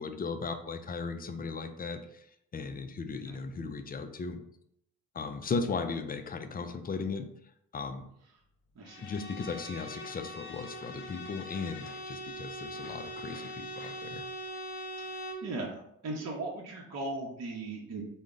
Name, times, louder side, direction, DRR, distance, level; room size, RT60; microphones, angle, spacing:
voice 1, 0.0-2.3 2.5-4.4 5.1-7.3 7.7-8.1 9.0-14.3, left 4 dB, 25° left, 8 dB, 0.4 m, -37 dB
voice 2, 8.8-9.1 15.0-18.0, right 2 dB, 40° right, -2 dB, 0.8 m, -38 dB
Bowed string instrument, 8.9-15.5, equal, 65° left, 0.7 m, -42 dB
3.7 x 2.1 x 3.6 m, 0.76 s
hypercardioid pair, 55°, 39 cm